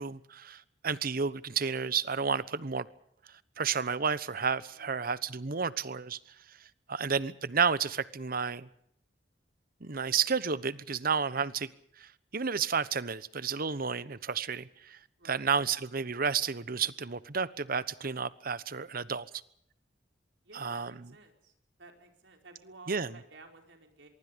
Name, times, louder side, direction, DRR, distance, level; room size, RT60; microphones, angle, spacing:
voice 1, 0.0-2.9 3.6-6.2 6.9-8.7 9.8-11.7 12.0-12.1 12.3-15.0 15.2-19.3 20.5-21.0 22.9-23.1, right 6 dB, 55° right, 1.1 m, -31 dB
voice 2, 4.7-5.0 15.2-15.4 20.4-21.5 21.8-24.1, right 3 dB, 75° right, 4.8 m, -54 dB
24.5 x 23.5 x 5.3 m
head